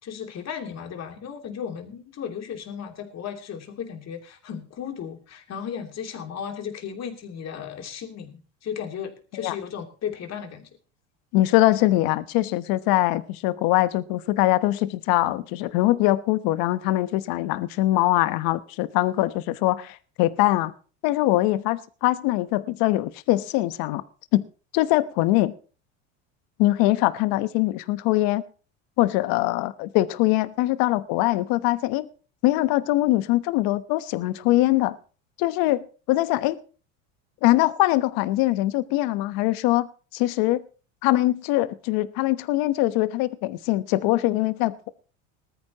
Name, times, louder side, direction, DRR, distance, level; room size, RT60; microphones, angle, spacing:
voice 1, 0.0-10.7, left 8 dB, 40° left, 3.1 m, -35 dB
voice 2, 11.3-20.7 21.0-24.0 24.3-24.4 24.7-25.5 26.6-28.4 29.0-32.1 32.4-35.0 35.4-36.6 37.4-39.9 40.1-40.6 41.0-44.9, left 17 dB, 60° left, 1.1 m, -22 dB
19.5 x 13.5 x 2.9 m
hypercardioid pair, 90°, 39 cm